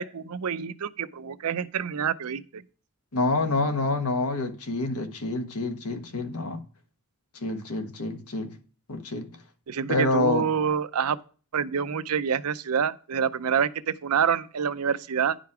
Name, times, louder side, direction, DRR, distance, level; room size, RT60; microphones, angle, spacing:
voice 1, 0.0-2.6 9.7-11.2 11.5-15.4, right 7 dB, 85° right, 0.5 m, -27 dB
voice 2, 3.1-6.6 7.3-8.5 8.9-9.3 9.9-10.5, left 2 dB, 90° left, 1.3 m, -27 dB
10.0 x 5.2 x 4.7 m
head